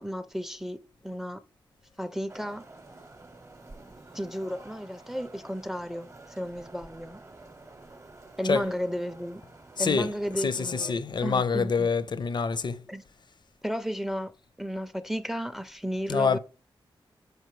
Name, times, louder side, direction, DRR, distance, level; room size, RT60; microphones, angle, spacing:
voice 1, 0.0-1.4 2.0-2.6 4.1-7.2 8.4-9.4 9.8-11.9 12.9-13.0 13.6-14.3 14.6-16.4, equal, 5° right, 0.4 m, -33 dB
sound 1, 2.3-10.9, right 2 dB, 30° right, 0.7 m, -50 dB
voice 2, 9.8-12.8 16.1-16.4, left 5 dB, 55° left, 0.5 m, -26 dB
6.6 x 4.8 x 3.1 m
cardioid pair, 70°, 9 cm